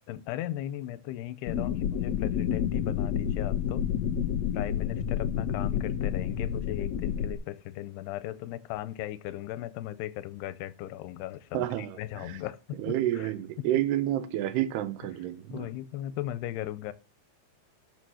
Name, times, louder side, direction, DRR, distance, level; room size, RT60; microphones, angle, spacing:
voice 1, 0.1-3.9 4.5-13.3 15.5-16.9, left 14 dB, 85° left, 2.8 m, -37 dB
sound 1, 1.5-7.3, left 9 dB, 65° left, 1.9 m, -29 dB
voice 2, 11.5-12.4 12.8-15.7, right 13 dB, 85° right, 3.1 m, -30 dB
13.0 x 6.4 x 6.4 m
omnidirectional pair, 4.7 m